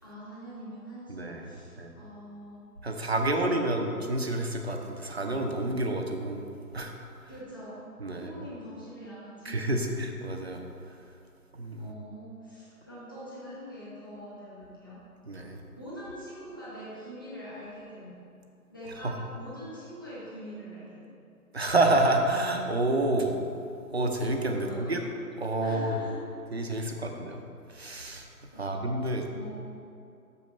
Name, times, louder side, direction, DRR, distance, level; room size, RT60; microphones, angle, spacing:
voice 1, 0.0-2.6 3.2-3.9 7.3-7.8 8.1-9.9 11.8-15.0 15.7-18.1 18.7-21.1 24.5-25.0 25.6-26.3 26.7-27.1 28.5-28.9 29.3-29.5, equal, 15° left, -11 dB, 1.0 m, -44 dB
voice 2, 1.1-1.5 1.8-1.9 2.8-6.4 6.7-6.9 8.0-8.3 9.5-10.6 11.6-11.9 15.3-15.6 19.0-19.1 21.5-23.4 23.9-25.0 25.4-26.0 26.5-27.4 27.7-28.3 28.6-29.2, right 2 dB, 45° right, 3 dB, 0.6 m, -28 dB
6.8 x 5.4 x 5.1 m, 2.5 s
figure-of-eight pair, 170°, 47 cm